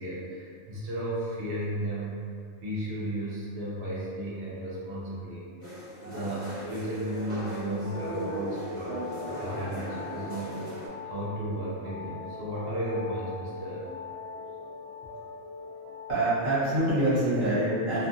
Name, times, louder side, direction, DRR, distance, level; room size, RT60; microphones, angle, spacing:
voice 1, 0.0-2.2 2.6-5.4 6.0-10.6 11.0-13.8, right 1 dB, 60° right, -7 dB, 0.8 m, -34 dB
sound 1, 5.6-10.9, right 1 dB, 35° left, 1.0 m, -38 dB
sound 2, 7.5-16.7, left 4 dB, 25° right, 0.5 m, -41 dB
voice 2, 16.1-18.1, right 1 dB, 40° right, -12 dB, 1.3 m, -25 dB
2.6 x 2.5 x 2.5 m, 2.4 s
omnidirectional pair, 1.4 m